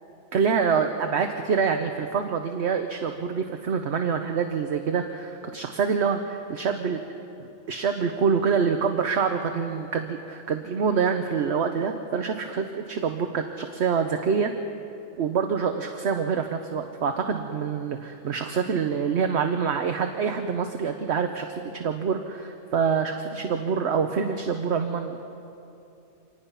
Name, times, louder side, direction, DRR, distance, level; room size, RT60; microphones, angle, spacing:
voice 1, 0.3-7.0 7.7-14.5 15.2-25.2, right 6 dB, 55° right, 6 dB, 1.1 m, -26 dB
26.0 x 19.0 x 5.7 m, 2.8 s
omnidirectional pair, 1.4 m